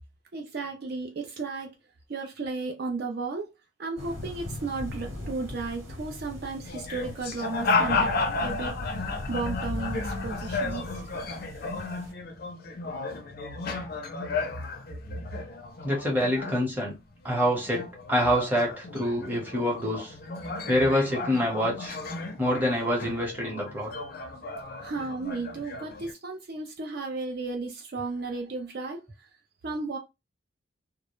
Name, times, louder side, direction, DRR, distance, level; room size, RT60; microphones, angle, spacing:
voice 1, 0.3-1.7 2.1-3.5 3.8-8.1 8.4-11.0 24.8-29.3 29.6-30.0, right 3 dB, 50° right, 0.4 m, -34 dB
sound 1, 4.0-12.1, left 1 dB, 80° right, 1.3 m, -39 dB
sound 2, 6.6-17.1 17.4-26.1, left 3 dB, 45° left, 0.4 m, -33 dB
voice 2, 15.8-17.0 17.2-20.1 20.7-22.0 22.4-23.9, equal, 10° right, 0.8 m, -26 dB
2.2 x 2.1 x 2.9 m
head